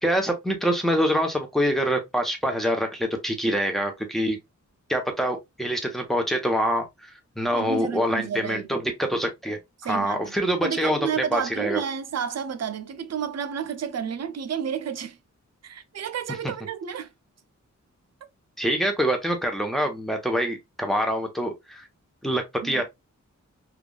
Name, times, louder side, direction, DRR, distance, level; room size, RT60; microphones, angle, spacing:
voice 1, 0.0-4.4 4.9-6.8 7.4-11.8 18.6-21.8 22.2-22.8, equal, ahead, 0.8 m, -25 dB
voice 2, 7.5-8.7 9.8-10.3 10.6-15.2 15.6-17.1 22.6-22.8, right 8 dB, 55° right, 0.5 m, -31 dB
3.5 x 2.4 x 2.2 m
wide cardioid pair, 95°, 30 cm